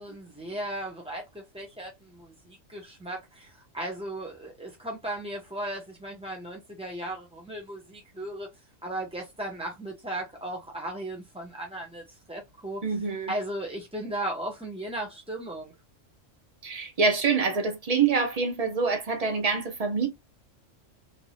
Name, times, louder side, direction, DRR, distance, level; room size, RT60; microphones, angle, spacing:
voice 1, 0.0-8.5 8.8-12.0 12.3-12.8 13.3-15.7, right 1 dB, 10° right, 0.3 m, -36 dB
voice 2, 12.8-13.3 16.6-20.1, right 5 dB, 35° right, 0.8 m, -26 dB
3.2 x 2.6 x 3.1 m
omnidirectional pair, 1.3 m